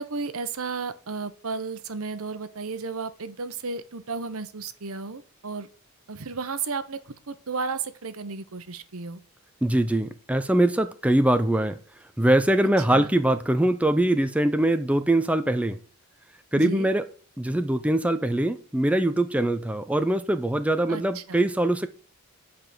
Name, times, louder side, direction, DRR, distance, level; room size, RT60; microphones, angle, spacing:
voice 1, 0.0-5.7 6.1-7.0 7.3-9.2 12.9-13.1 16.5-16.9 20.9-21.4, right 4 dB, 65° right, 0.9 m, -33 dB
voice 2, 9.6-11.8 12.2-15.8 16.5-17.0 17.4-21.9, right 1 dB, 5° right, 0.5 m, -22 dB
9.3 x 5.0 x 7.6 m
head